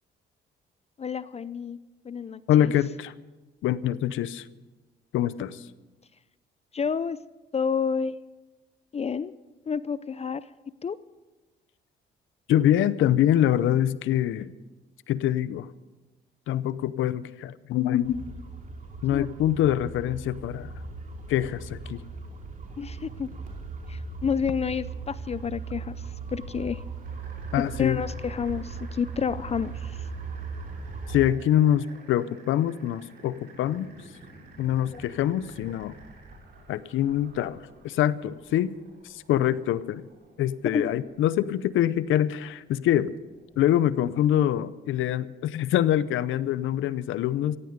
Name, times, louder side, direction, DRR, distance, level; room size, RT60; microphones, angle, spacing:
voice 1, 1.0-1.8 2.1-2.7 6.7-7.2 7.5-8.2 8.9-9.3 9.7-10.4 10.8-11.0 19.1-19.3 22.8-23.3 23.9-26.0 26.3-26.8 27.8-30.0 40.7-40.9, left 6 dB, 30° left, 16 dB, 0.5 m, -29 dB
voice 2, 2.5-3.1 3.6-4.4 5.1-5.5 12.5-14.5 15.1-15.7 16.5-18.3 19.0-20.7 21.3-22.0 27.5-28.0 31.1-33.9 34.6-36.0 36.7-37.6 37.8-38.7 39.1-40.0 40.4-43.1 43.6-47.6, left 11 dB, 80° left, 17 dB, 0.7 m, -24 dB
sound 1, 18.0-31.3, right 4 dB, 40° right, 2.7 m, -38 dB
sound 2, 27.0-45.7, right 2 dB, 60° right, 6.9 m, -52 dB
17.5 x 15.5 x 5.2 m, 1.2 s
cardioid pair, 90°, 20 cm